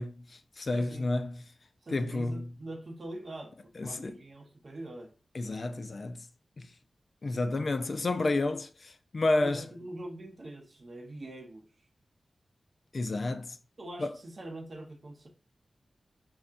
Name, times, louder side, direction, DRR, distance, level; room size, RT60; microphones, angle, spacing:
voice 1, 0.0-1.5 1.9-2.5 3.8-4.2 5.3-6.3 6.6-6.7 7.2-9.7 12.9-13.6 14.0-14.2, left 2 dB, 45° left, 0.3 m, -31 dB
voice 2, 0.7-1.1 1.8-5.2 9.4-11.7 13.8-15.3, right 1 dB, 45° right, 0.8 m, -43 dB
5.6 x 2.1 x 2.4 m
wide cardioid pair, 130°, 0 cm